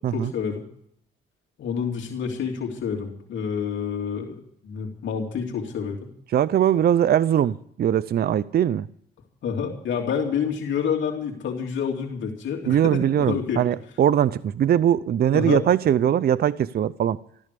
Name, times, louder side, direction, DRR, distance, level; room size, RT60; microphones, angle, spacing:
voice 1, 0.1-0.6 1.6-6.1 9.4-13.6 15.3-15.6, left 7 dB, 70° left, 2.8 m, -28 dB
voice 2, 6.3-8.9 12.7-17.2, right 10 dB, 50° right, 0.6 m, -21 dB
14.5 x 13.5 x 6.8 m
cardioid pair, 90°, 20 cm